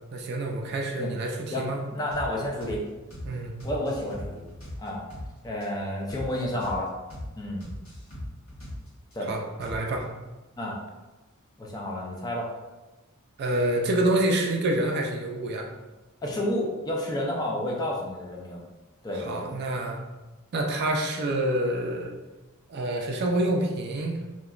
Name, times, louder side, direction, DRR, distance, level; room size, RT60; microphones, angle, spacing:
voice 1, 0.1-1.8 3.2-3.5 9.3-10.1 13.4-15.7 19.1-20.0 20.5-22.1 22.7-24.2, right 1 dB, 50° right, 1 dB, 0.4 m, -27 dB
voice 2, 1.5-2.8 3.6-4.5 4.8-5.0 5.4-6.9 7.4-7.7 9.1-9.3 10.6-10.8 11.6-12.5 16.2-18.6 19.0-19.6, left 1 dB, 20° left, -2 dB, 0.4 m, -30 dB
sound 1, 2.1-2.3 2.6-2.8 3.1-3.3 3.6-5.3 5.6-5.7 6.1-6.3 6.6-6.8 7.1-7.3 7.6-9.1 9.6-10.0, left 1 dB, 75° left, 1.3 m, -39 dB
2.9 x 2.2 x 2.3 m, 1.1 s
head